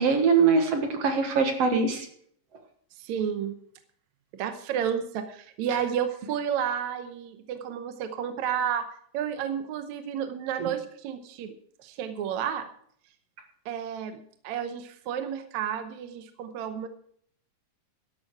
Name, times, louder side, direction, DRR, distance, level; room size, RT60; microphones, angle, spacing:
voice 1, 0.0-2.1 10.6-10.7, right 5 dB, 55° right, 5 dB, 2.2 m, -22 dB
voice 2, 3.0-3.6 4.3-8.9 9.1-12.7 13.7-16.9, right 8 dB, 70° right, 8 dB, 1.9 m, -31 dB
13.0 x 11.0 x 4.7 m, 0.63 s
omnidirectional pair, 4.0 m